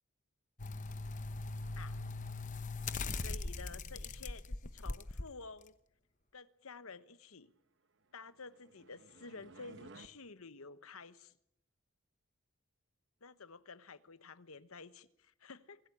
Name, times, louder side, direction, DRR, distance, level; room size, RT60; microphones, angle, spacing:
sound 1, 0.6-5.2 5.7-5.8, left 3 dB, 35° left, 0.9 m, -40 dB
voice 1, 3.2-5.7 6.3-7.5 8.1-11.3 13.2-15.8, left 4 dB, 80° left, 1.1 m, -51 dB
sound 2, 8.1-10.1, right 2 dB, 55° right, 1.0 m, -57 dB
25.0 x 16.0 x 8.6 m
head